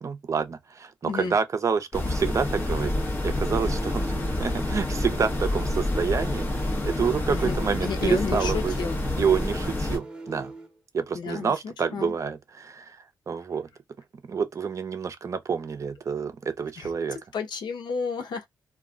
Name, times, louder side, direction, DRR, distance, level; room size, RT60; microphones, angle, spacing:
voice 1, 0.0-3.0 3.2-4.1 4.4-8.7 9.2-10.5 10.9-13.7 14.3-17.2, right 6 dB, 40° right, 0.6 m, -28 dB
voice 2, 1.0-1.4 7.3-9.0 11.1-12.1 16.8-16.9 17.3-18.5, left 5 dB, 75° left, 0.7 m, -31 dB
sound 1, 1.9-10.0, left 1 dB, 25° left, 0.9 m, -28 dB
sound 2, 2.4-10.8, right 2 dB, 10° right, 1.0 m, -42 dB
2.4 x 2.1 x 3.6 m
cardioid pair, 110°, 8 cm